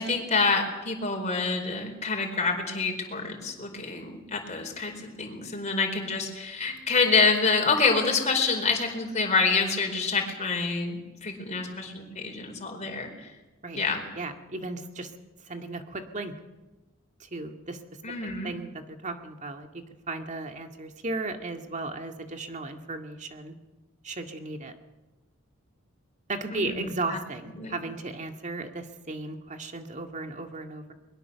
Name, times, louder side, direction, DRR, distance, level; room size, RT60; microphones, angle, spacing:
voice 1, 0.0-13.3 13.7-14.0 18.0-18.5 26.5-27.2 27.5-27.8, left 4 dB, 35° left, 3 dB, 4.6 m, -27 dB
voice 2, 14.2-15.1 15.5-16.3 17.2-17.8 18.4-19.7 20.1-23.5 24.0-24.7 26.3-30.9, right 2 dB, 35° right, 5 dB, 2.0 m, -35 dB
22.5 x 22.0 x 7.0 m, 1.1 s
head